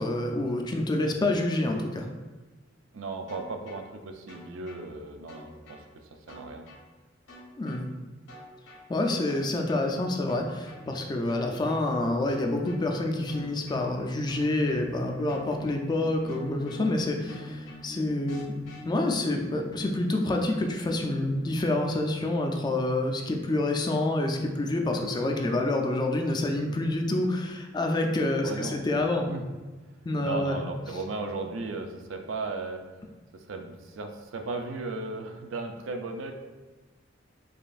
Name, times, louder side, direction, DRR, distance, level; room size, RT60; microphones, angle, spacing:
voice 1, 0.0-2.1 7.6-7.8 8.9-18.5 18.9-29.3 30.1-30.6, left 2 dB, 20° left, 3 dB, 0.3 m, -27 dB
voice 2, 2.9-5.8 6.3-6.7 28.4-28.9 29.3-29.4 30.2-32.8 33.3-36.3, right 3 dB, 85° right, 5 dB, 0.4 m, -36 dB
sound 1, 3.3-3.8 4.3-4.8 5.3-5.8 6.3-6.8 7.3-7.8 8.3-8.8 9.3-9.8 10.3-10.8 11.3-11.8 12.3-12.8 13.3-13.8 14.3-14.8 15.3-15.8 16.3-16.8 17.3-17.8 18.3-18.8, left 1 dB, 90° left, 1.4 m, -48 dB
sound 2, 10.0-21.7, equal, 70° left, 0.6 m, -46 dB
5.0 x 2.5 x 2.4 m, 1.3 s
head